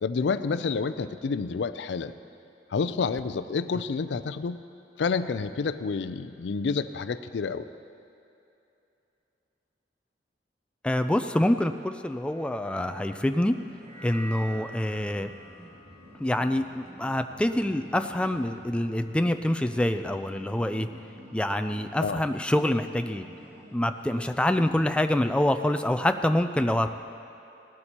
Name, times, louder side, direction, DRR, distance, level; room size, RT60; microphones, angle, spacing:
voice 1, 0.0-2.1 2.7-4.6 5.0-7.7 22.0-22.2, left 5 dB, 80° left, 12 dB, 0.4 m, -29 dB
voice 2, 10.8-13.6 14.0-15.3 16.2-20.9 21.3-23.2 23.7-26.9, left 1 dB, 5° left, 7 dB, 0.3 m, -26 dB
sound 1, 12.1-18.5, right 1 dB, 40° right, 2.3 m, -48 dB
sound 2, 12.8-25.2, right 1 dB, 60° right, 2.5 m, -50 dB
18.0 x 12.0 x 2.9 m, 2.8 s
head